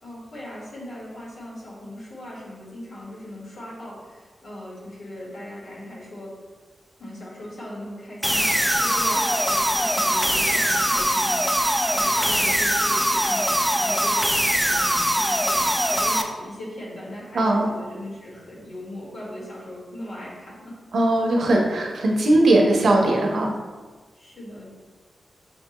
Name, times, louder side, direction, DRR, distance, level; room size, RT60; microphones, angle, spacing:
voice 1, 0.0-6.3 7.0-21.1 24.1-24.7, left 1 dB, 70° left, -5 dB, 1.5 m, -38 dB
sound 1, 8.2-16.2, equal, ahead, 0.4 m, -22 dB
voice 2, 17.3-17.7 20.9-23.5, right 1 dB, 80° right, 0 dB, 0.7 m, -19 dB
6.4 x 2.2 x 2.9 m, 1.3 s
wide cardioid pair, 95°, 0 cm